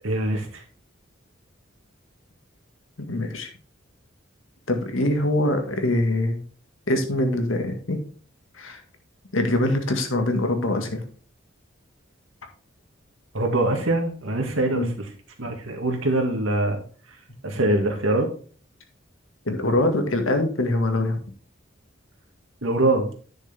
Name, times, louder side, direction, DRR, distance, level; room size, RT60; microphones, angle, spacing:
voice 1, 0.0-0.6 13.3-15.1 15.4-16.8 17.4-18.3 22.6-23.1, right 2 dB, 90° right, 3 dB, 2.1 m, -23 dB
voice 2, 3.0-3.5 4.7-6.4 6.9-8.0 8.5-8.8 9.3-11.0 14.7-14.9 19.5-21.2, left 1 dB, 85° left, 5 dB, 1.8 m, -23 dB
10.5 x 6.5 x 3.5 m, 0.42 s
head